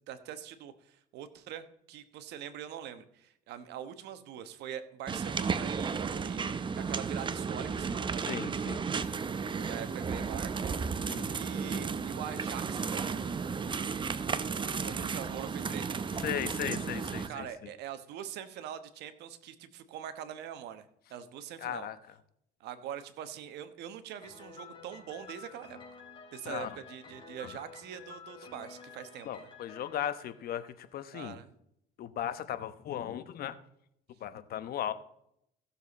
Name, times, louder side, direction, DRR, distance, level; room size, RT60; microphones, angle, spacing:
voice 1, 0.1-8.4 9.6-10.5 11.3-13.3 14.7-16.1 17.3-21.9 22.6-25.8 26.3-29.5 31.1-31.5, right 10 dB, 80° right, 11 dB, 1.2 m, -43 dB
sound 1, 5.1-17.3, right 5 dB, 30° right, 0.7 m, -34 dB
voice 2, 8.3-8.8 11.0-11.3 16.2-17.5 21.6-22.0 26.4-26.8 27.4-27.5 29.2-31.4 32.0-33.6 34.2-34.9, left 10 dB, 65° left, 12 dB, 1.0 m, -37 dB
Piano, 24.2-31.0, left 5 dB, 30° left, 3.7 m, -51 dB
16.0 x 7.1 x 4.1 m, 0.74 s
cardioid pair, 110°, 17 cm